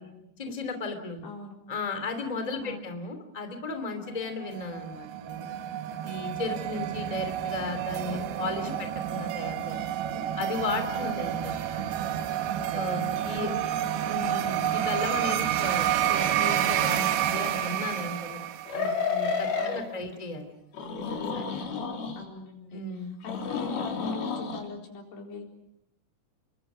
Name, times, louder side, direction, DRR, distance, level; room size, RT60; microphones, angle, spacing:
voice 1, 0.4-1.3 1.7-5.5 6.0-11.9 12.7-13.5 14.1-18.4 18.7-20.5 21.1-21.5 22.7-23.1, left 3 dB, 10° left, 7 dB, 2.3 m, -35 dB
voice 2, 1.2-1.6 2.6-2.9 8.1-8.8 11.0-11.4 13.4-14.2 19.6-20.2 22.2-25.4, left 4 dB, 85° left, 1 dB, 6.3 m, -43 dB
sound 1, 4.4-19.1, right 11 dB, 85° right, 3.2 m, -29 dB
sound 2, 17.3-17.4 18.7-19.8 20.7-22.2 23.2-24.6, left 5 dB, 70° left, 5.3 m, -31 dB
29.0 x 24.0 x 6.3 m, 0.79 s
omnidirectional pair, 4.6 m